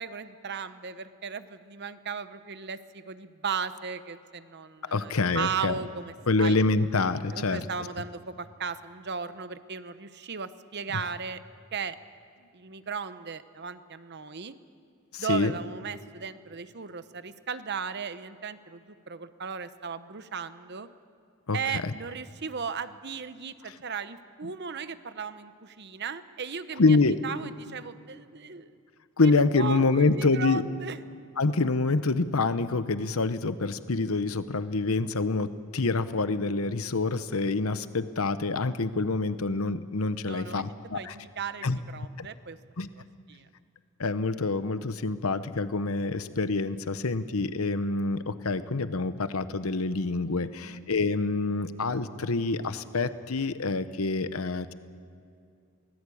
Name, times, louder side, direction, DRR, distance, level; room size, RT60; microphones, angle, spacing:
voice 1, 0.0-6.6 7.3-11.4 11.7-11.9 12.5-14.5 15.2-20.9 21.5-27.0 27.2-28.7 29.2-31.0 40.3-42.6 43.0-43.1 43.3-43.5 50.6-50.8, right 6 dB, 50° right, 12 dB, 0.9 m, -36 dB
voice 2, 4.9-5.8 6.3-7.7 10.9-11.0 15.1-15.5 21.5-21.9 26.8-27.2 29.2-30.6 31.4-41.1 41.6-41.8 42.2-42.3 42.8-42.9 44.0-54.7, left 3 dB, 75° left, 12 dB, 0.9 m, -26 dB
24.0 x 19.0 x 8.5 m, 2.4 s
head